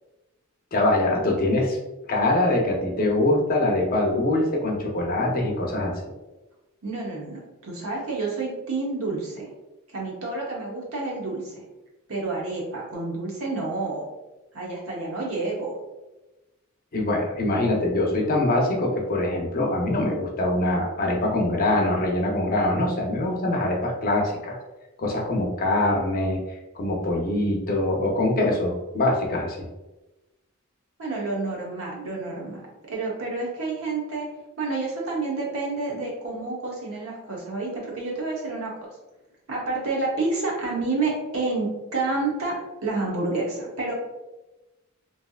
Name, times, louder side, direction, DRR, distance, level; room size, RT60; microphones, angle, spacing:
voice 1, 0.7-1.8 2.1-5.9 16.9-24.6 25.0-26.4 26.7-29.6, left 1 dB, 40° left, 0 dB, 0.6 m, -23 dB
voice 2, 6.8-9.5 9.9-11.5 12.1-14.1 14.5-15.8 31.0-32.6 32.9-34.3 34.6-38.7 39.5-43.9, right 3 dB, 70° right, -3 dB, 1.0 m, -29 dB
3.2 x 2.6 x 2.3 m, 1.0 s
head